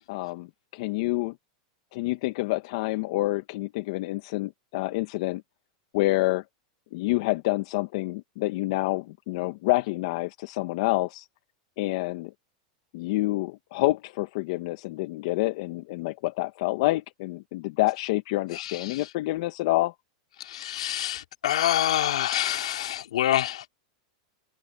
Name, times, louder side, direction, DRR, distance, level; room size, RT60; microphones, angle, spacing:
voice 1, 0.1-1.4 1.9-5.4 5.9-6.4 6.9-11.3 11.8-12.3 12.9-19.9, left 19 dB, 60° left, 1.1 m, -28 dB
voice 2, 18.5-19.0 20.4-23.7, left 12 dB, 85° left, 3.0 m, -27 dB
supercardioid pair, 140°, 3 cm